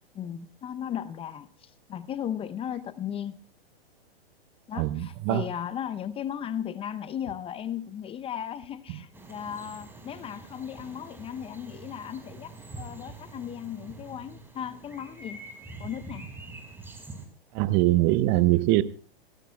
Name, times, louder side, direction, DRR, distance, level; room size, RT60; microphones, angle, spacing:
voice 1, 0.1-3.4 4.7-15.4 15.8-16.2, left 9 dB, 20° left, 0.7 m, -36 dB
voice 2, 4.7-5.4 17.5-18.8, right 17 dB, 35° right, 1.0 m, -22 dB
sound 1, 9.1-17.3, right 3 dB, 5° right, 4.7 m, -45 dB
28.0 x 17.5 x 2.3 m
hypercardioid pair, 115°, 31 cm